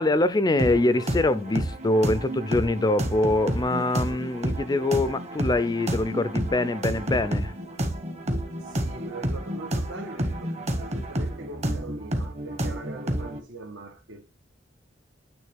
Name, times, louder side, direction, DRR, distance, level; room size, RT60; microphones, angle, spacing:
voice 1, 0.0-7.5, left 2 dB, 20° left, 0.4 m, -24 dB
sound 1, 0.6-13.4, right 1 dB, 35° right, 1.2 m, -30 dB
voice 2, 8.6-14.2, right 2 dB, 80° right, 1.4 m, -41 dB
9.3 x 3.2 x 3.5 m
head